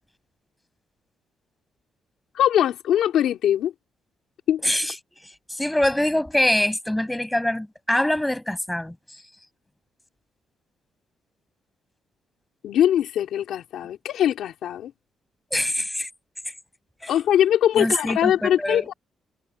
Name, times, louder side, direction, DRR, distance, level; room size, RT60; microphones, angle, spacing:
voice 1, 2.3-3.7 4.5-4.6 12.6-14.9 17.1-18.9, left 10 dB, 80° left, 3.3 m, -21 dB
voice 2, 4.6-4.9 5.5-8.9 15.5-16.1 16.4-16.5 17.0-17.1 17.8-18.8, left 1 dB, 5° left, 7.7 m, -24 dB
cardioid pair, 125°, 0 cm